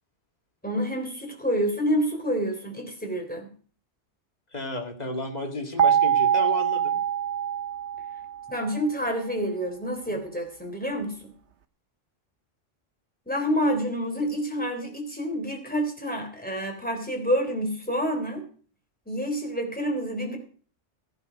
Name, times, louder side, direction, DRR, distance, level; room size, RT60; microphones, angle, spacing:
voice 1, 0.6-3.5 8.5-11.3 13.3-18.4 19.1-20.4, equal, 5° left, 2 dB, 3.6 m, -28 dB
voice 2, 4.5-7.0 10.1-10.2, left 2 dB, 35° left, 2 dB, 2.4 m, -32 dB
sound 1, 5.8-8.7, right 9 dB, 70° right, 1.3 m, -24 dB
15.0 x 11.0 x 5.3 m, 0.41 s
omnidirectional pair, 1.2 m